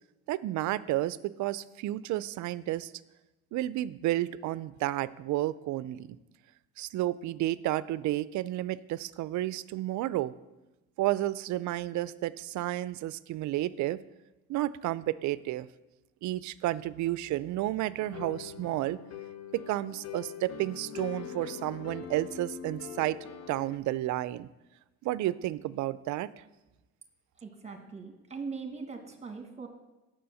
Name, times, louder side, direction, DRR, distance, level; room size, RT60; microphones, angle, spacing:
voice 1, 0.3-2.9 3.5-6.2 6.8-10.3 11.0-14.0 14.5-15.7 16.2-19.0 19.5-23.2 23.5-24.5 25.0-26.3, right 15 dB, 65° right, 18 dB, 0.4 m, -31 dB
sound 1, 18.0-23.8, left 8 dB, 55° left, 0.9 m, -43 dB
voice 2, 27.4-29.7, right 4 dB, 20° right, 5 dB, 1.4 m, -41 dB
6.8 x 6.2 x 7.7 m, 1.0 s
cardioid pair, 105°, 32 cm